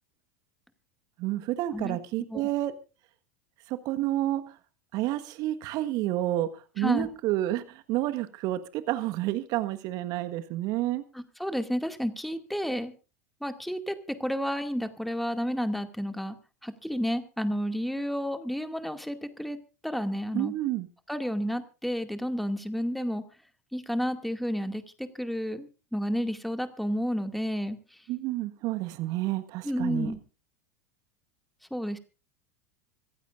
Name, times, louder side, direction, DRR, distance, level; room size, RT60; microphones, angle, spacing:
voice 1, 1.2-2.7 3.7-4.5 4.9-11.0 20.3-20.9 28.1-30.1, right 15 dB, 45° right, 9 dB, 1.5 m, -30 dB
voice 2, 6.8-7.1 11.1-12.9 13.4-16.4 16.6-19.6 19.8-20.5 21.1-23.2 23.7-28.0 29.6-30.2 31.7-32.0, equal, ahead, 7 dB, 2.2 m, -31 dB
26.0 x 15.0 x 2.5 m, 0.34 s
figure-of-eight pair, 85°, 9 cm